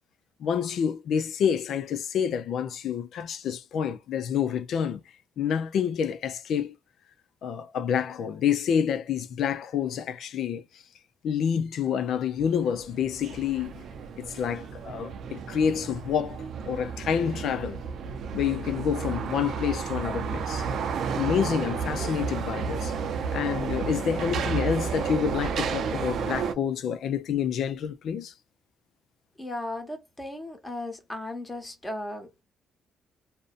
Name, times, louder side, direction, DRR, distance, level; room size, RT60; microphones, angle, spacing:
voice 1, 0.4-5.0 5.4-6.8 7.4-10.6 11.2-13.8 14.2-17.8 18.3-20.7 21.1-22.9 23.3-28.3, left 8 dB, 70° left, 0.5 m, -28 dB
sound 1, 12.7-26.5, right 6 dB, 70° right, 0.5 m, -32 dB
voice 2, 29.4-32.4, left 1 dB, 15° left, 1.1 m, -36 dB
2.5 x 2.1 x 2.5 m
cardioid pair, 90°, 0 cm